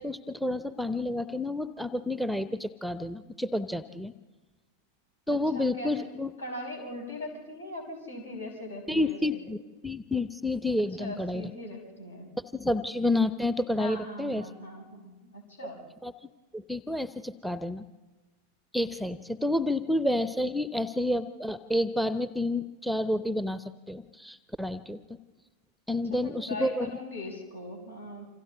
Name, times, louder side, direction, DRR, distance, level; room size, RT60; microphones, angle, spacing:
voice 1, 0.0-4.1 5.3-6.3 8.9-9.6 9.8-11.5 12.4-14.5 16.0-16.1 16.5-17.9 18.7-25.0 25.9-26.9, left 1 dB, ahead, 15 dB, 0.6 m, -29 dB
voice 2, 5.3-5.9 6.4-9.4 11.0-12.3 13.8-15.8 25.9-28.2, left 1 dB, 75° left, 0 dB, 5.8 m, -40 dB
28.5 x 26.5 x 3.8 m, 1.2 s
figure-of-eight pair, 90°, 0 cm